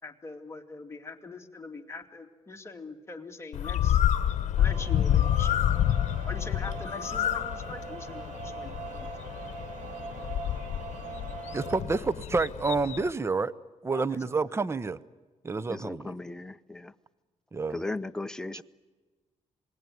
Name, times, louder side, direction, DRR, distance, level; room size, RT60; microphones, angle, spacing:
voice 1, 0.0-4.0 4.6-5.7 6.3-9.1 13.9-14.0 15.6-15.7, left 3 dB, 20° left, 2.7 m, -42 dB
Bird, 3.5-13.1, left 11 dB, 75° left, 1.0 m, -29 dB
sound 1, 4.6-11.8, right 5 dB, 75° right, 2.7 m, -42 dB
voice 2, 11.5-13.5 13.8-15.0 15.4-16.1 17.5-17.8, right 4 dB, 20° right, 0.7 m, -29 dB
voice 3, 15.7-16.9 17.7-18.6, left 2 dB, 5° left, 0.8 m, -36 dB
27.0 x 20.5 x 9.3 m
cardioid pair, 100°, 12 cm